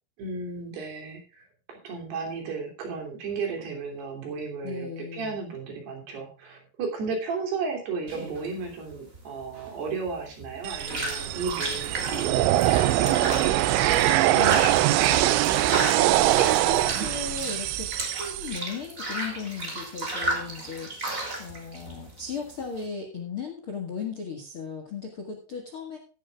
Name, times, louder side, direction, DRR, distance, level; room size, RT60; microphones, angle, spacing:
voice 1, 0.2-13.3, right 4 dB, 65° right, 2 dB, 5.0 m, -34 dB
voice 2, 4.6-5.4 14.3-14.6 16.6-26.0, left 6 dB, 50° left, 2 dB, 1.7 m, -36 dB
sound 1, 8.1-22.8, right 2 dB, 20° right, 2.8 m, -34 dB
sound 2, 10.6-18.6, right 14 dB, 85° right, 3.0 m, -23 dB
15.5 x 11.0 x 2.4 m, 0.38 s
omnidirectional pair, 5.2 m